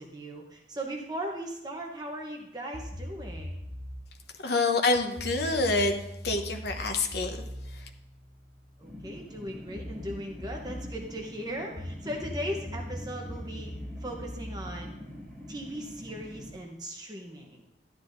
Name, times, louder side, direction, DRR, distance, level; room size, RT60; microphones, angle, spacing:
voice 1, 0.0-3.6 8.8-15.0 15.5-17.7, equal, 20° right, 1 dB, 0.8 m, -38 dB
sound 1, 2.7-4.0 5.2-8.9 9.8-11.0 11.8-15.7, equal, 25° left, 1.0 m, -40 dB
voice 2, 4.4-7.3, left 3 dB, 55° left, 4 dB, 0.9 m, -27 dB
sound 2, 8.8-16.5, left 1 dB, ahead, 2.1 m, -45 dB
12.0 x 9.6 x 2.6 m, 0.84 s
head